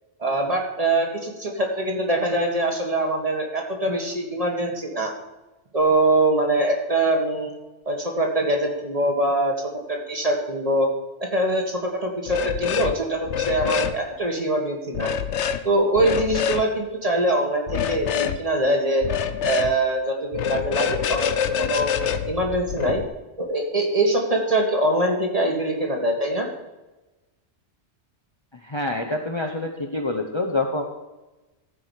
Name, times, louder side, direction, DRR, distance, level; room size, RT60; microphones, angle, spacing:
voice 1, 0.2-5.1 5.7-7.5 7.9-10.9 11.2-15.1 15.6-19.1 19.4-23.0 23.4-26.5, right 1 dB, 35° right, 1 dB, 1.8 m, -23 dB
sound 1, 12.3-13.0 13.2-14.0 15.0-15.6 16.0-16.6 17.7-18.4 19.0-19.7 20.3-23.0, left 8 dB, 80° left, 1.0 m, -26 dB
voice 2, 28.6-30.9, left 2 dB, 25° left, 3 dB, 0.9 m, -26 dB
14.5 x 4.9 x 7.3 m, 1.1 s
omnidirectional pair, 1.2 m